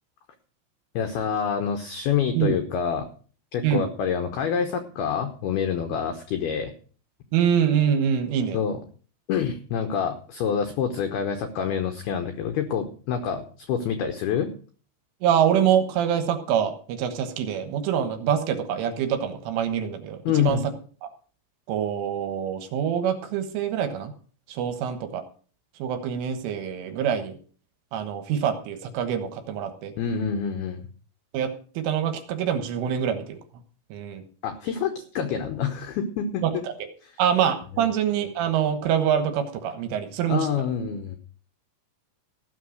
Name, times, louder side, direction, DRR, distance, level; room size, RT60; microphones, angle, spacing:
voice 1, 1.0-3.1 3.5-6.7 8.5-8.8 9.3-14.5 20.3-20.6 30.0-30.9 34.4-36.6 37.0-37.1 40.3-41.2, left 7 dB, 85° left, 7 dB, 2.2 m, -27 dB
voice 2, 7.3-8.6 15.2-20.6 21.0-21.1 21.7-24.1 24.5-25.2 25.8-27.3 27.9-29.9 31.3-31.5 31.8-33.4 33.9-34.2 37.2-40.5, right 8 dB, 75° right, 8 dB, 3.6 m, -25 dB
16.0 x 6.5 x 6.4 m, 0.43 s
omnidirectional pair, 6.0 m